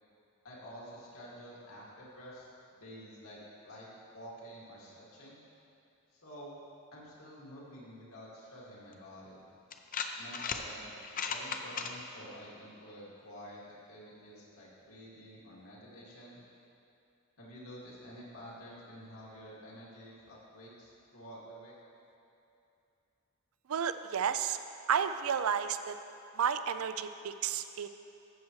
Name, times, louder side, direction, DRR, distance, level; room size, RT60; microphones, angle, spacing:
voice 1, 0.4-5.4 6.1-6.6 6.9-9.4 10.2-16.4 17.4-21.7, equal, 80° left, -6 dB, 2.3 m, -50 dB
sound 1, 8.9-9.0 9.7-10.6 11.0-11.9, left 6 dB, 40° left, 0.5 m, -36 dB
voice 2, 23.7-24.6 24.9-26.0 26.4-27.9, right 7 dB, 75° right, 11 dB, 0.4 m, -31 dB
13.0 x 7.5 x 3.1 m, 2.8 s
head